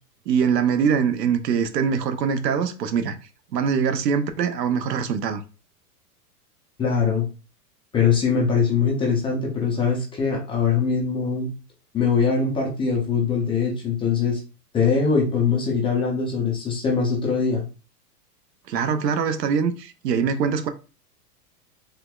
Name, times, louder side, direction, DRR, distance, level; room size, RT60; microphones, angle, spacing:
voice 1, 0.3-3.2 3.5-5.4 18.7-20.7, right 6 dB, 90° right, 0.7 m, -23 dB
voice 2, 6.8-7.3 7.9-11.5 11.9-14.4 14.7-17.6, left 5 dB, 10° left, 0.4 m, -22 dB
3.4 x 3.0 x 2.3 m
hypercardioid pair, 120°, 48 cm